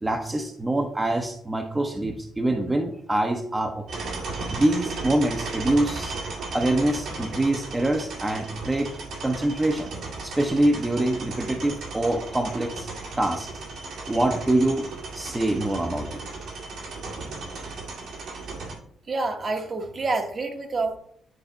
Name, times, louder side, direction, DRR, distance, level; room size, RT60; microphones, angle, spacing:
voice 1, 0.0-3.8 4.5-6.2 6.5-8.9 9.2-9.9 10.2-12.9 13.2-13.5 14.1-14.9 15.1-16.2, right 1 dB, 15° right, 3 dB, 0.8 m, -25 dB
sound 1, 3.9-18.8, right 3 dB, 75° right, 2.2 m, -35 dB
voice 2, 19.1-21.0, right 3 dB, 40° right, 5 dB, 1.0 m, -27 dB
9.4 x 3.3 x 4.0 m, 0.63 s
cardioid pair, 90°, 0 cm